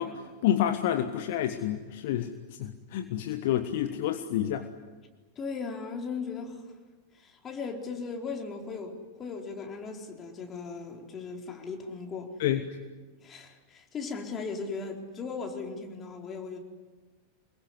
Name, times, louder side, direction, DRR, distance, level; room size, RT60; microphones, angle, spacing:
voice 1, 0.0-2.3 2.6-4.7 12.4-12.6, left 11 dB, 50° left, 8 dB, 1.4 m, -29 dB
voice 2, 5.4-6.6 7.1-12.3 13.2-16.6, left 4 dB, 25° left, 2 dB, 4.3 m, -37 dB
26.0 x 22.0 x 9.8 m, 1.3 s
figure-of-eight pair, 90°, 0 cm